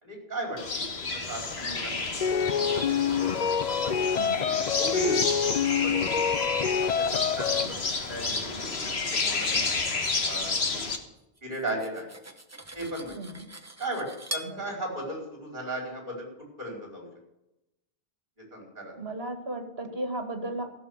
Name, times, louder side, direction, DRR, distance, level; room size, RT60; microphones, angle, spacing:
voice 1, 0.0-2.0 2.3-2.8 3.7-4.0 4.8-5.2 5.8-6.4 6.9-8.6 9.0-9.6 10.2-10.9 11.4-12.1 12.7-13.1 13.8-14.1 14.3-16.3 16.6-17.1 18.5-18.9, right 1 dB, 50° right, -1 dB, 5.0 m, -36 dB
sound 1, 0.6-11.0, left 3 dB, 90° left, 1.8 m, -31 dB
sound 2, 2.2-7.7, left 7 dB, 45° left, 0.7 m, -26 dB
Cutlery silverware, 11.4-14.6, equal, 15° right, 1.0 m, -41 dB
voice 2, 13.2-13.5 14.4-14.7 19.0-20.7, right 2 dB, 75° right, 5 dB, 2.4 m, -35 dB
15.0 x 7.0 x 8.1 m, 0.91 s
omnidirectional pair, 1.0 m